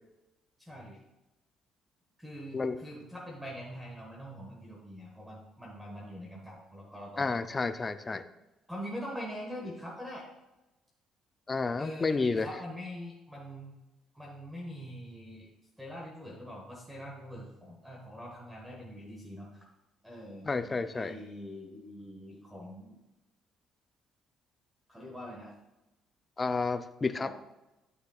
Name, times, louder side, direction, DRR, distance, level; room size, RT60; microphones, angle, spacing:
voice 1, 0.6-1.0 2.2-7.3 8.7-10.2 11.8-13.7 14.1-15.5 15.8-19.6 20.0-20.5 20.9-23.0 24.9-25.5 27.2-27.3, equal, 5° right, -2 dB, 1.3 m, -43 dB
voice 2, 7.2-8.2 11.5-12.5 20.4-21.1 26.4-27.3, left 4 dB, 25° left, 11 dB, 0.4 m, -30 dB
11.0 x 6.6 x 2.4 m, 1.0 s
cardioid pair, 120°, 0 cm